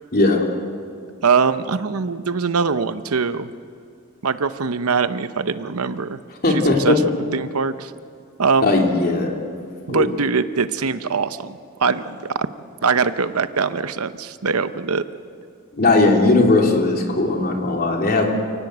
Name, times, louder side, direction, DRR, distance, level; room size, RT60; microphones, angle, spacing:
voice 1, 0.1-0.4 6.4-7.0 8.6-9.3 9.9-10.0 15.7-18.2, left 2 dB, 45° left, 1 dB, 3.4 m, -17 dB
voice 2, 1.2-3.5 4.2-6.2 6.5-7.0 7.3-7.9 8.4-8.7 9.9-12.5 12.8-15.0, right 5 dB, 80° right, 12 dB, 0.9 m, -22 dB
29.0 x 18.0 x 8.1 m, 2.3 s
head